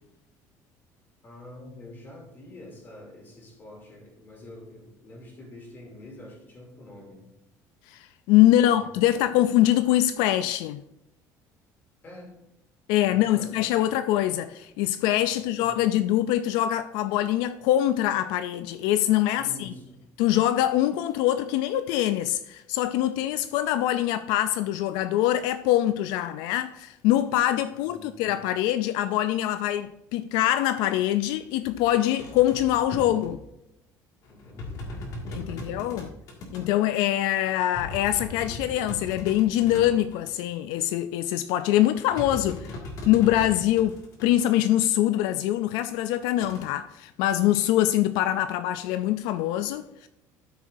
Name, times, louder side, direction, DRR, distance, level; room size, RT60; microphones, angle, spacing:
voice 1, 1.2-7.3 8.5-9.5 12.0-12.4 13.0-13.6 15.3-15.8 19.4-20.0 27.7-28.4 34.3-35.8, left 1 dB, 30° left, 2.7 m, -47 dB
voice 2, 7.9-10.8 12.9-19.7 20.2-33.4 35.3-36.1 36.5-42.7 43.1-50.1, left 13 dB, 85° left, 0.3 m, -24 dB
sound 1, 31.3-31.4 31.6-33.4 34.2-36.6 37.4-40.3 41.8-44.3 46.4-46.7, left 1 dB, 55° left, 2.0 m, -39 dB
13.0 x 6.3 x 2.6 m
cardioid pair, 150°, 7 cm